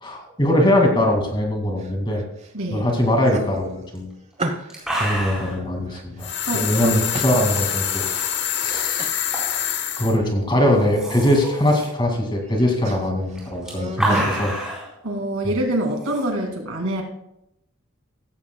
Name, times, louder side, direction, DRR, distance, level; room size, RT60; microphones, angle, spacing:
voice 1, 0.0-2.2 2.7-4.1 4.9-8.0 8.4-9.0 10.0-14.5, left 1 dB, 20° left, 2 dB, 2.2 m, -21 dB
sound 1, 1.8-2.5 2.9-4.9 5.4-6.6 7.1-8.0 8.4-8.5 9.0-9.3 9.7-10.3 10.6-11.2 11.6-12.1 12.4-14.3, right 2 dB, 30° right, 1.0 m, -35 dB
voice 2, 2.5-2.9 6.5-7.0 15.0-17.0, right 1 dB, 90° right, 2 dB, 2.5 m, -25 dB
Male Drinking Sipping Slirpping Coffee Gulg Swallow, 3.9-4.0 4.4-4.5 4.7-5.6 6.7-8.4 9.3-9.6 9.9-10.0 10.7-11.9 13.3-14.9 16.0-16.2, right 1 dB, 5° right, 4.1 m, -29 dB
sound 2, 6.2-10.2, left 10 dB, 55° left, 1.0 m, -25 dB
15.5 x 15.0 x 2.3 m, 0.84 s
head